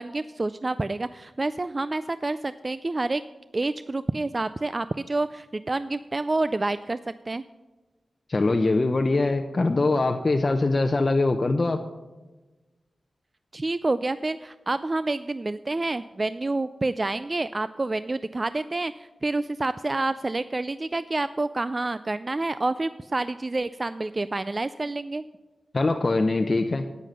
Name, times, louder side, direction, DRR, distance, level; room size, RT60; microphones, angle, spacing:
voice 1, 0.0-3.2 3.5-7.0 7.3-7.4 13.5-25.2, right 2 dB, 40° right, 14 dB, 0.3 m, -28 dB
voice 2, 8.3-11.8 25.7-26.9, left 3 dB, 45° left, 5 dB, 0.6 m, -22 dB
9.4 x 8.9 x 5.5 m, 1.2 s
cardioid pair, 45°, 0 cm